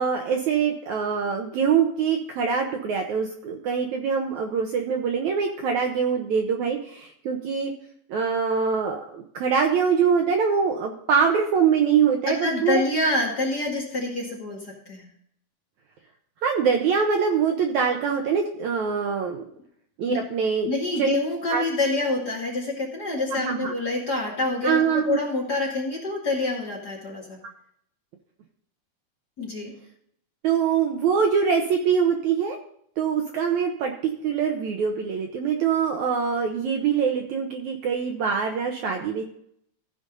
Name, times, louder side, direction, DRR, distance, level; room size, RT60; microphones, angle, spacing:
voice 1, 0.0-7.7 8.1-12.8 16.4-19.4 20.0-20.7 21.0-21.2 21.5-21.6 23.3-23.7 24.6-25.2 30.4-32.6 33.0-39.2, right 6 dB, 70° right, 3 dB, 1.9 m, -24 dB
voice 2, 12.4-15.1 20.1-20.2 20.7-27.4 29.4-29.7, left 2 dB, 30° left, -3 dB, 2.3 m, -27 dB
15.5 x 5.1 x 5.2 m, 0.68 s
omnidirectional pair, 4.1 m